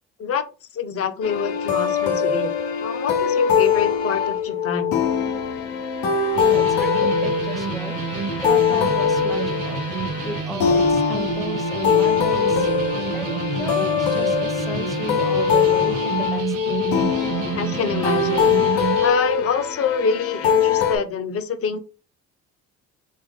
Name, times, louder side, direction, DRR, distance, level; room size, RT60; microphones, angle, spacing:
voice 1, 0.7-2.5 2.8-5.0 17.5-21.8, left 6 dB, 50° left, 10 dB, 0.7 m, -26 dB
sound 1, 1.2-21.0, left 6 dB, 90° left, 0.7 m, -22 dB
voice 2, 6.4-9.8 10.2-16.9, equal, ahead, 5 dB, 0.8 m, -35 dB
sound 2, 6.4-19.1, right 7 dB, 85° right, 0.6 m, -29 dB
3.2 x 2.4 x 3.5 m, 0.33 s
supercardioid pair, 65°, 29 cm